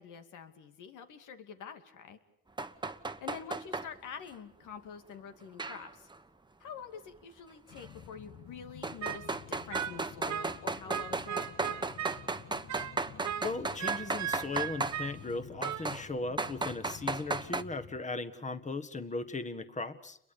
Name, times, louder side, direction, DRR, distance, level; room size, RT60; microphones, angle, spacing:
voice 1, 0.0-2.2 3.2-6.1 6.6-11.9, left 6 dB, 85° left, 7 dB, 2.7 m, -47 dB
sound 1, 2.6-3.9 5.6-6.2 7.8-7.9 8.8-15.0 15.6-16.0 16.4-17.6, right 3 dB, 15° right, 1.2 m, -35 dB
sound 2, 7.7-18.0, left 9 dB, 70° left, 1.8 m, -52 dB
sound 3, 9.0-9.3 9.7-10.6 10.9-12.2 12.7-15.2 15.6-16.0, right 10 dB, 70° right, 1.3 m, -38 dB
voice 2, 13.4-20.2, left 3 dB, 25° left, 11 dB, 1.7 m, -37 dB
29.5 x 22.5 x 7.0 m, 0.70 s
cardioid pair, 90°, 30 cm